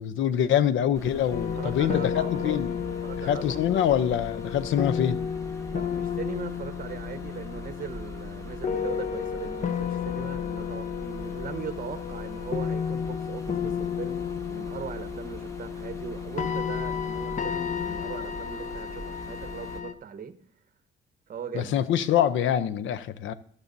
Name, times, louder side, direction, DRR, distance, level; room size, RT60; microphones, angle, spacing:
voice 1, 0.0-2.7 3.2-5.2 21.5-23.3, left 10 dB, 75° left, 0.6 m, -25 dB
sound 1, 0.9-19.8, right 1 dB, 15° left, 1.7 m, -43 dB
sound 2, 1.3-19.9, left 7 dB, 40° left, 0.8 m, -32 dB
voice 2, 1.5-2.6 3.0-3.9 5.7-20.4 21.3-21.7, right 7 dB, 45° right, 1.0 m, -39 dB
14.0 x 12.5 x 2.7 m
cardioid pair, 90°, 20 cm